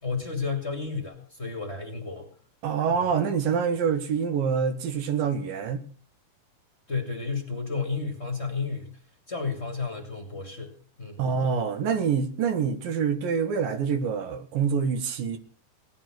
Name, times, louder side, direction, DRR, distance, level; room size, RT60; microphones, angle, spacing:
voice 1, 0.0-2.3 2.9-3.0 6.9-8.9 9.3-11.2, left 4 dB, 20° left, 2.1 m, -32 dB
voice 2, 2.6-5.8 11.2-15.4, right 6 dB, 85° right, 3.2 m, -26 dB
18.5 x 11.0 x 6.2 m
omnidirectional pair, 3.9 m